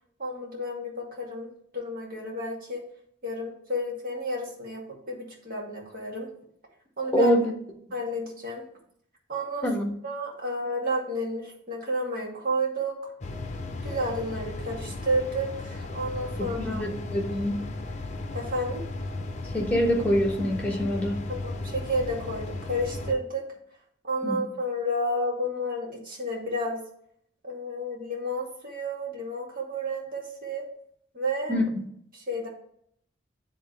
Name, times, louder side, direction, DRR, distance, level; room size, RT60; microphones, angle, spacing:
voice 1, 0.2-2.8 3.2-6.3 7.0-7.3 7.9-8.6 9.3-9.7 10.0-13.1 13.8-16.8 18.3-18.8 21.3-23.4 24.0-26.8 27.4-30.6 31.1-31.6 32.1-32.5, equal, 50° right, -2 dB, 2.4 m, -31 dB
voice 2, 7.1-7.5 9.6-9.9 16.4-17.6 19.5-21.2 24.2-24.4 31.5-31.9, left 1 dB, 5° left, 0 dB, 1.5 m, -25 dB
sound 1, 13.2-23.1, left 2 dB, 40° left, 0.7 m, -35 dB
10.0 x 3.8 x 3.3 m, 0.66 s
head